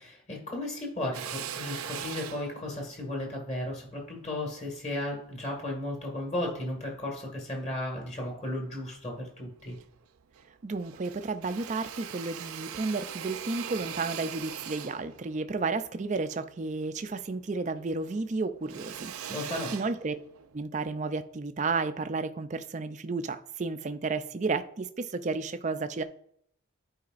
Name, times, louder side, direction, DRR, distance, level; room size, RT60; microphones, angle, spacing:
voice 1, 0.0-9.8 19.3-19.7, left 1 dB, 30° left, 1.9 m, -35 dB
Drill, 1.1-5.7 6.2-7.4 7.9-8.8 9.2-9.3 9.5-10.5 10.8-17.5 17.8-20.6, right 9 dB, 90° right, 0.5 m, -42 dB
voice 2, 10.6-19.1 19.4-20.2 20.5-26.0, right 3 dB, 35° right, 0.4 m, -32 dB
11.5 x 4.9 x 2.5 m
head